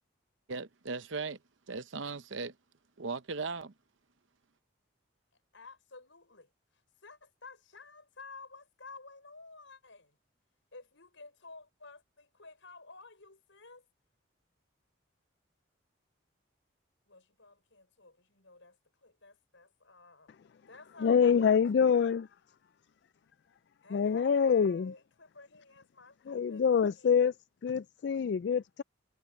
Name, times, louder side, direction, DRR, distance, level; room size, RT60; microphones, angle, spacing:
voice 1, 0.5-1.4 1.7-2.5 3.0-3.7, right 4 dB, 70° right, 0.8 m, -37 dB
voice 2, 5.3-10.2 10.7-13.9 17.1-20.4 20.7-21.6 23.8-27.1, left 3 dB, 70° left, 5.9 m, -53 dB
voice 3, 21.0-22.3 23.9-24.9 26.3-27.3 27.6-28.8, left 6 dB, 55° left, 0.3 m, -26 dB
head